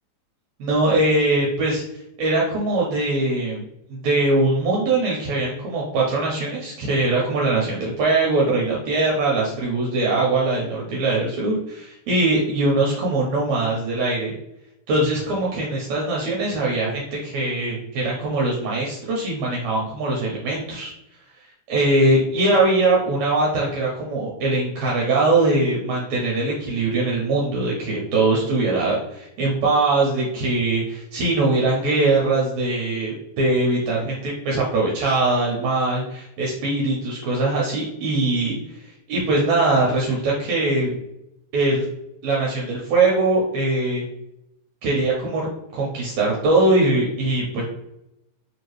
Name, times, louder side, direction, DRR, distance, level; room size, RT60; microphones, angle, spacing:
voice 1, 0.6-1.8 2.2-3.6 3.9-14.3 14.9-20.9 21.7-38.6 39.1-41.0 41.5-41.9 42.2-44.0 44.8-45.5 45.7-47.6, right 2 dB, 75° right, -3 dB, 2.0 m, -21 dB
4.5 x 2.8 x 3.1 m, 0.84 s
omnidirectional pair, 3.4 m